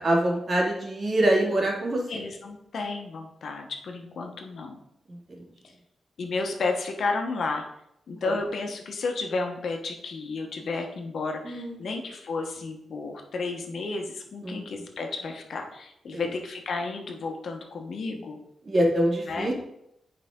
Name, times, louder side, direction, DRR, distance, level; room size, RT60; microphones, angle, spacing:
voice 1, 0.0-2.2 5.1-5.4 8.2-8.4 11.4-11.9 14.4-14.6 16.1-16.3 18.7-19.5, right 1 dB, 45° right, -2 dB, 2.4 m, -25 dB
voice 2, 2.1-4.8 6.2-7.6 8.1-18.4 19.3-19.5, left 3 dB, 70° left, 3 dB, 1.3 m, -32 dB
9.4 x 5.1 x 3.8 m, 0.79 s
cardioid pair, 95°, 0 cm